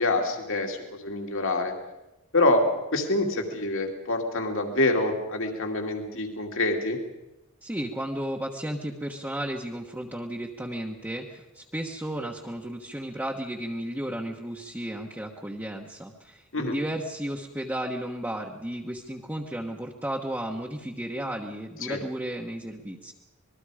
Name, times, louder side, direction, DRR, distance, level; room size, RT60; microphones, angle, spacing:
voice 1, 0.0-1.7 2.3-7.0 16.5-16.8 21.8-22.0, left 2 dB, 60° left, 3 dB, 2.6 m, -26 dB
voice 2, 7.6-23.1, right 1 dB, 10° right, -2 dB, 1.2 m, -34 dB
26.0 x 20.5 x 5.0 m, 0.99 s
head